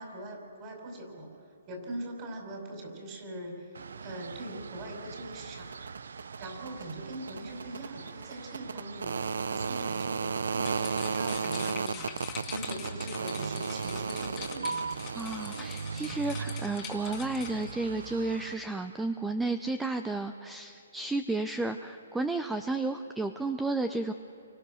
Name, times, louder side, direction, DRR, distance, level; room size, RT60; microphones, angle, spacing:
voice 1, 0.0-1.4 1.7-5.9 6.4-9.2 9.5-14.9, right 1 dB, 30° right, 1 dB, 5.3 m, -42 dB
sound 1, 3.7-18.5, right 5 dB, 75° right, 0.7 m, -36 dB
Train, 5.9-16.4, right 4 dB, 60° right, 3.6 m, -56 dB
sound 2, 10.5-17.7, left 9 dB, 20° left, 2.1 m, -44 dB
voice 2, 15.1-24.1, right 2 dB, 5° right, 8 dB, 0.6 m, -32 dB
29.5 x 24.5 x 6.4 m, 2.6 s
hypercardioid pair, 155°, 0 cm